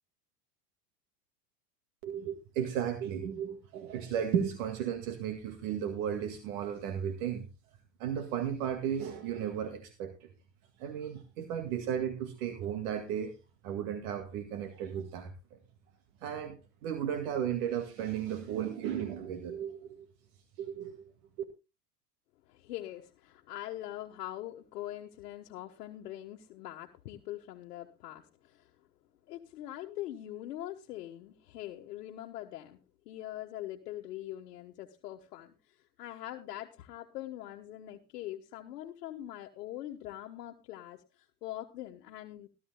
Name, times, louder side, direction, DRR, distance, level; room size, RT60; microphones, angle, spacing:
voice 1, 2.0-7.5 8.0-10.3 10.8-13.3 13.6-15.6 16.2-16.5 16.8-20.1 20.6-21.1, right 9 dB, 65° right, 6 dB, 2.1 m, -34 dB
voice 2, 22.5-28.7 29.3-32.8 33.0-42.5, left 14 dB, 75° left, 2 dB, 1.4 m, -43 dB
19.0 x 12.5 x 2.2 m, 0.28 s
hypercardioid pair, 105°, 47 cm